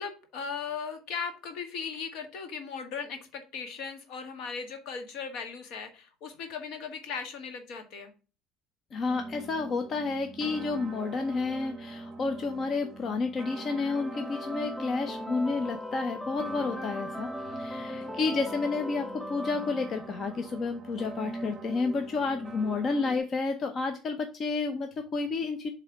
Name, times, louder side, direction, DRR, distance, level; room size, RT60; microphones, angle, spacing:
voice 1, 0.0-8.1 17.7-18.1, left 6 dB, 70° left, 6 dB, 1.6 m, -38 dB
voice 2, 8.9-25.7, left 4 dB, 40° left, 6 dB, 0.8 m, -30 dB
sound 1, 9.1-23.2, right 3 dB, 25° right, 0.9 m, -43 dB
sound 2, 13.6-20.6, left 1 dB, 5° left, 0.5 m, -40 dB
7.6 x 3.4 x 4.6 m, 0.35 s
supercardioid pair, 105°, 0 cm